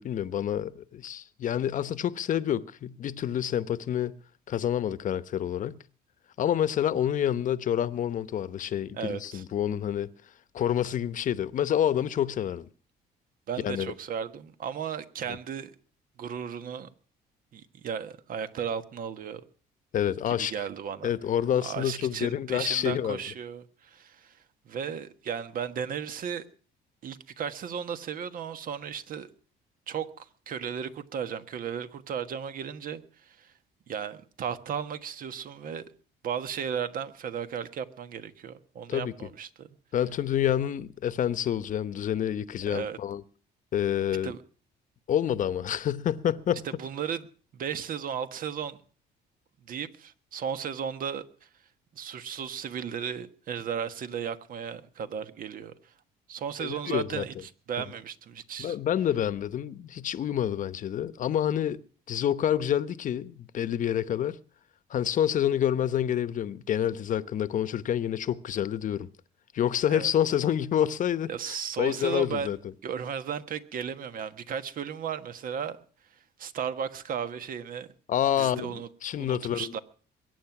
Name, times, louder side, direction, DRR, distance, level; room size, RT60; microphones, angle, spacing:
voice 1, 0.0-4.2 4.5-5.8 6.4-10.1 10.5-12.7 13.6-13.9 15.3-15.4 19.9-20.5 21.0-23.2 38.9-39.1 39.9-43.2 43.7-44.3 45.1-46.7 56.6-57.2 58.6-61.8 62.1-64.4 64.9-69.1 69.5-72.6 78.1-79.7, left 10 dB, 50° left, 1.0 m, -28 dB
voice 2, 9.0-9.4 13.5-15.7 16.2-16.9 17.5-19.4 20.3-21.1 21.6-26.5 27.0-29.3 29.9-33.5 33.9-35.8 36.2-39.7 42.7-43.0 44.2-44.4 46.6-47.3 47.5-48.8 49.7-51.2 51.9-55.7 56.3-58.8 69.9-70.1 71.3-72.5 72.8-75.8 76.4-77.9 78.4-78.9 79.2-79.8, right 7 dB, 55° right, 1.4 m, -35 dB
22.0 x 9.5 x 6.0 m
cardioid pair, 110°, 17 cm